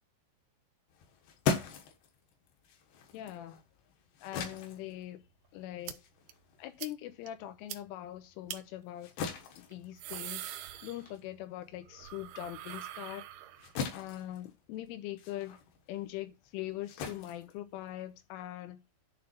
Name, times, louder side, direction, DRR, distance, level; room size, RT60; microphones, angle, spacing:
sound 1, 0.9-7.7 8.1-18.3, left 5 dB, 65° left, 3.1 m, -41 dB
voice 1, 3.1-3.6 4.2-5.2 5.5-6.0 6.6-9.1 9.6-10.5 10.8-13.3 13.9-15.6 15.9-19.0, left 14 dB, 85° left, 3.5 m, -42 dB
sound 2, 5.9-6.0 6.3-6.4 6.8-6.9 7.3-7.4 7.7-7.8 8.5-8.6 9.7-11.4 11.7-13.8, right 12 dB, 90° right, 2.2 m, -43 dB
11.0 x 3.6 x 5.8 m
omnidirectional pair, 5.5 m